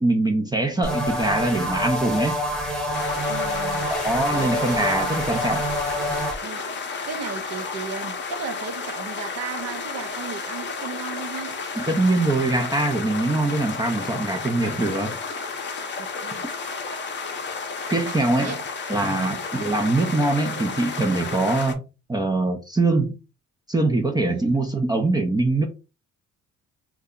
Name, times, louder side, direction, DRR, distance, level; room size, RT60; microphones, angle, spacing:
voice 1, 0.0-2.4 3.9-5.6 11.8-15.2 17.9-18.5 18.9-21.8 22.1-23.2 23.7-25.7, right 2 dB, 15° right, 0.5 m, -23 dB
sound 1, 0.8-6.4, equal, ahead, 1.0 m, -27 dB
sound 2, 2.9-21.7, left 4 dB, 40° left, 0.7 m, -32 dB
voice 2, 3.3-4.0 4.3-5.2 6.4-6.7 7.1-11.6 15.9-16.5 17.9-18.6 19.2-19.4 24.3-24.6, right 6 dB, 60° right, 0.7 m, -35 dB
2.6 x 2.3 x 3.7 m
cardioid pair, 90°, 30 cm